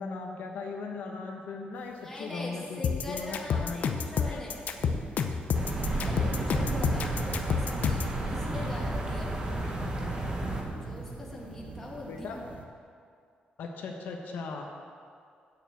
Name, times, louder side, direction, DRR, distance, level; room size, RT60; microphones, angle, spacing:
voice 1, 0.0-3.9 4.3-4.4 12.1-12.4 13.6-14.6, left 4 dB, 70° left, 1 dB, 1.1 m, -38 dB
voice 2, 2.0-4.6 5.9-8.0 8.3-9.6 10.7-12.4, left 1 dB, 10° left, -4 dB, 1.8 m, -41 dB
sound 1, 2.3-2.4 2.9-12.7, right 3 dB, 45° right, 0.9 m, -43 dB
sound 2, 2.8-8.1, left 6 dB, 55° left, 0.6 m, -29 dB
sound 3, 5.5-10.6, right 1 dB, 25° right, 1.2 m, -32 dB
8.8 x 6.8 x 8.1 m, 2.3 s
wide cardioid pair, 180°, 3 cm